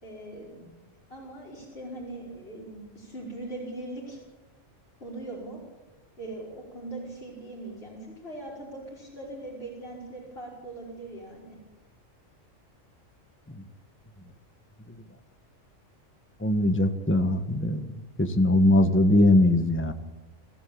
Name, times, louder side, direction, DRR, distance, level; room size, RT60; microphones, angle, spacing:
voice 1, 0.0-0.8 1.1-4.2 5.0-5.6 6.2-11.6, right 2 dB, 50° left, -6 dB, 5.5 m, -40 dB
voice 2, 16.4-19.9, left 1 dB, 10° left, 8 dB, 1.3 m, -21 dB
27.0 x 15.0 x 8.7 m, 1.1 s
omnidirectional pair, 1.4 m